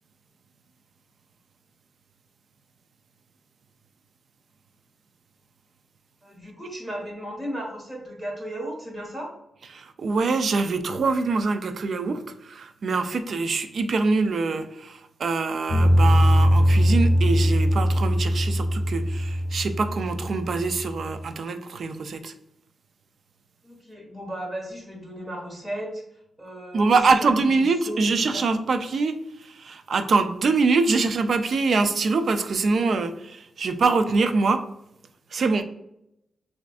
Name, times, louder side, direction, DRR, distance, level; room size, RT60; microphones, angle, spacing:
voice 1, 6.2-9.3 23.6-26.0 26.4-28.4, right 1 dB, 20° right, -1 dB, 1.5 m, -35 dB
voice 2, 9.7-22.3 26.7-34.6 35.3-35.6, right 4 dB, 55° right, 9 dB, 0.4 m, -24 dB
sound 1, 15.7-21.2, equal, 40° left, 0.6 m, -21 dB
6.6 x 2.5 x 2.5 m, 0.80 s
wide cardioid pair, 125°, 0 cm